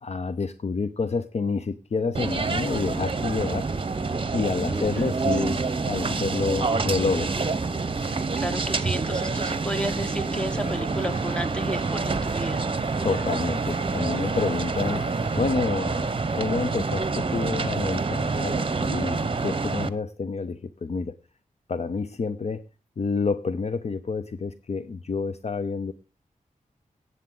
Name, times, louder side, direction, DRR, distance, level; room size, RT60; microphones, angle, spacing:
voice 1, 0.0-3.7 4.3-7.4 13.0-16.1 16.3-21.2 21.7-22.7 23.0-25.9, left 4 dB, 50° left, 0.6 m, -28 dB
sound 1, 2.1-19.9, right 4 dB, 40° right, 0.9 m, -27 dB
voice 2, 4.6-5.1 8.0-12.6, right 1 dB, 5° left, 1.0 m, -33 dB
sound 2, 9.1-15.5, left 2 dB, 70° left, 3.8 m, -44 dB
17.0 x 8.0 x 3.8 m
wide cardioid pair, 95°, 14 cm